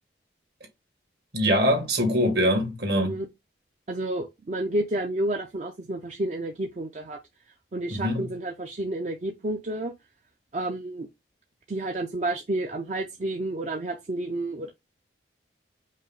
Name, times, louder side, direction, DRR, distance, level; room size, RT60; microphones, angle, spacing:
voice 1, 1.3-3.1 7.9-8.3, equal, 60° right, 1.8 m, -23 dB
voice 2, 3.9-7.2 7.7-9.9 10.5-11.1 11.7-14.7, right 1 dB, 40° right, 0.5 m, -30 dB
5.2 x 2.0 x 3.9 m
head